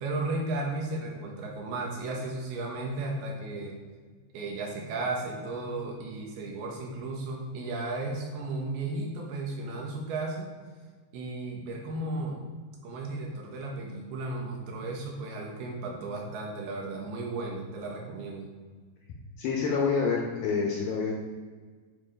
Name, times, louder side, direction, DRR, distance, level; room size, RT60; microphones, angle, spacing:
voice 1, 0.0-3.7 4.3-10.5 11.1-12.4 12.8-18.5, right 2 dB, 70° right, -1 dB, 2.9 m, -34 dB
voice 2, 19.4-21.1, left 5 dB, 75° left, -1 dB, 2.2 m, -27 dB
9.3 x 4.7 x 5.1 m, 1.5 s
omnidirectional pair, 5.1 m